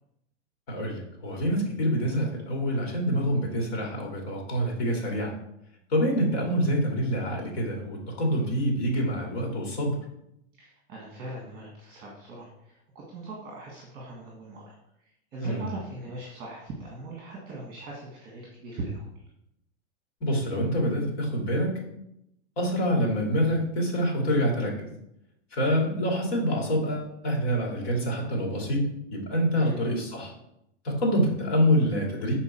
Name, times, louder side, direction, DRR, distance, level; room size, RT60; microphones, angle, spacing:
voice 1, 0.7-5.3 5.9-10.0 15.4-15.7 20.2-21.7 22.6-24.7 25.5-30.3 30.8-32.4, equal, 60° left, 0 dB, 2.5 m, -26 dB
voice 2, 10.6-19.2 29.6-29.8, right 2 dB, 30° right, -3 dB, 1.5 m, -41 dB
6.9 x 4.4 x 4.3 m, 0.80 s
supercardioid pair, 160°, 34 cm